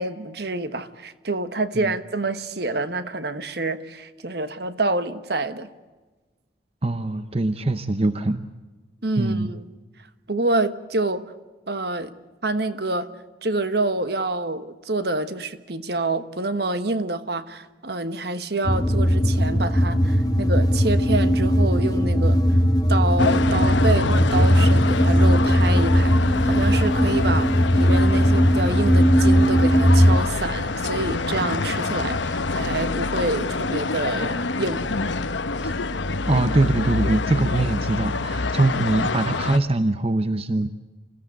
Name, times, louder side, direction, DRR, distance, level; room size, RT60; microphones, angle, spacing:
voice 1, 0.0-5.7 9.0-9.6 10.3-11.3 11.7-12.1 12.4-13.1 13.4-22.4 22.9-34.8 35.7-35.8, right 2 dB, 60° right, 1.3 m, -27 dB
voice 2, 6.8-8.5 9.2-9.5 35.6-35.7 36.3-40.7, right 2 dB, 30° right, 0.8 m, -23 dB
sound 1, 18.6-30.2, equal, 20° left, 1.1 m, -18 dB
sound 2, 23.2-39.6, left 3 dB, 75° left, 1.0 m, -26 dB
28.0 x 16.0 x 8.1 m
head